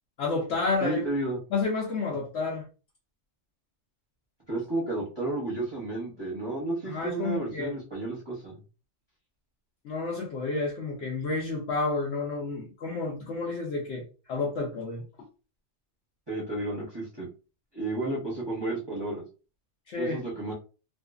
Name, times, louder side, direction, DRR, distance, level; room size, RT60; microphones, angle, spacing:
voice 1, 0.2-1.1 1.5-2.6 6.8-7.8 9.8-15.0 19.9-20.2, left 3 dB, 75° left, -3 dB, 0.9 m, -30 dB
voice 2, 0.8-1.4 4.5-8.6 16.3-17.3 17.7-19.2 20.0-20.5, right 2 dB, 25° right, -5 dB, 0.7 m, -32 dB
2.5 x 2.5 x 2.3 m, 0.34 s
omnidirectional pair, 1.2 m